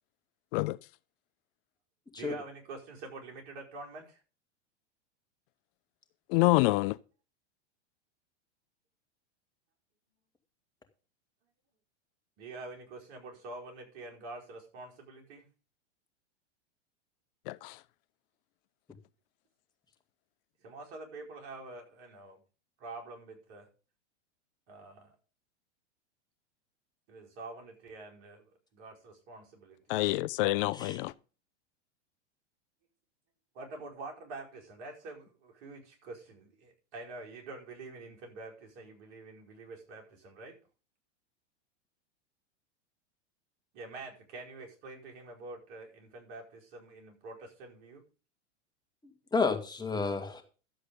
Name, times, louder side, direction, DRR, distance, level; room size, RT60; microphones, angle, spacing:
voice 1, 2.2-4.2 12.4-15.5 20.6-22.4 22.8-23.7 24.7-25.2 27.1-29.8 33.5-40.6 43.7-48.0, right 3 dB, 55° right, 5.0 m, -46 dB
voice 2, 6.3-7.0 17.5-17.8 29.9-31.1, left 20 dB, 50° left, 0.5 m, -27 dB
voice 3, 49.3-50.4, left 4 dB, 10° left, 2.2 m, -30 dB
12.5 x 7.9 x 5.3 m
hypercardioid pair, 110°, 36 cm